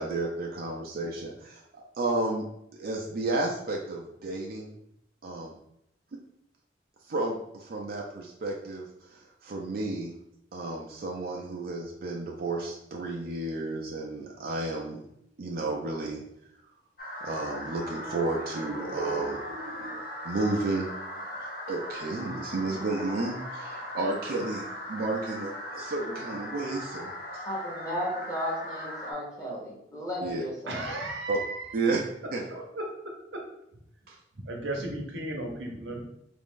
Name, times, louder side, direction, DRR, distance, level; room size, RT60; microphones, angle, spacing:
voice 1, 0.0-2.4 2.8-4.7 5.2-5.5 6.1-6.2 7.1-10.1 10.5-15.0 15.4-16.2 17.2-20.9 21.7-27.4 30.2-30.4 31.3-31.4 31.7-32.0 32.3-32.6 34.1-34.2, right 2 dB, 55° right, 0 dB, 0.5 m, -32 dB
sound 1, 17.0-29.1, left 1 dB, 55° left, 0.8 m, -39 dB
voice 2, 27.4-30.8, equal, 20° left, -4 dB, 1.0 m, -34 dB
voice 3, 30.7-31.6 32.7-32.8 34.5-36.0, right 2 dB, 85° right, 2 dB, 0.8 m, -34 dB
3.5 x 2.5 x 3.6 m, 0.78 s
head